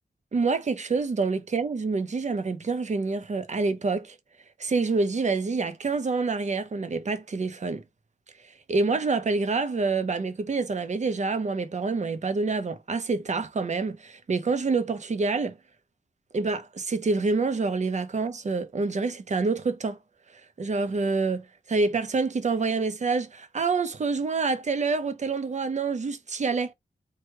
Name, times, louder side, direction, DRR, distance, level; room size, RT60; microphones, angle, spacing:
voice 1, 0.3-4.1 4.6-7.8 8.7-15.5 16.3-20.0 20.6-26.7, right 4 dB, 50° right, 0.8 m, -27 dB
4.8 x 2.4 x 4.4 m
wide cardioid pair, 110°, 16 cm